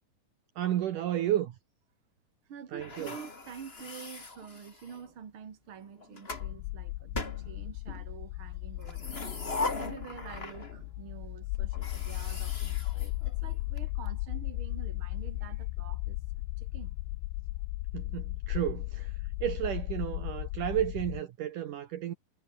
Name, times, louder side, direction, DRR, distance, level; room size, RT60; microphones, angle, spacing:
voice 1, 0.6-1.6 2.7-3.1 17.9-19.1 19.4-22.1, right 12 dB, 75° right, 1.9 m, -32 dB
voice 2, 2.5-9.2 9.8-16.2 16.6-17.0, right 7 dB, 40° right, 2.1 m, -47 dB
sound 1, 2.8-5.1 5.8-6.5 7.1-8.0 8.8-10.9 11.2-11.3 11.7-13.8, left 3 dB, 25° left, 1.4 m, -39 dB
sound 2, 6.3-21.2, left 21 dB, 85° left, 2.5 m, -36 dB
omnidirectional pair, 5.7 m